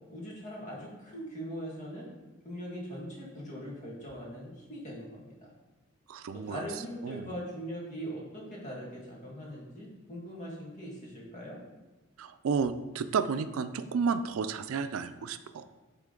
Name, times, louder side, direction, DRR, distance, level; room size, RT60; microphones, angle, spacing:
voice 1, 0.1-2.1 2.4-5.5 6.3-11.6, equal, 35° left, -3 dB, 1.7 m, -41 dB
voice 2, 6.1-6.7 7.0-7.3 12.2-15.7, right 5 dB, 90° right, 11 dB, 0.4 m, -32 dB
8.9 x 3.6 x 3.8 m, 1.1 s
head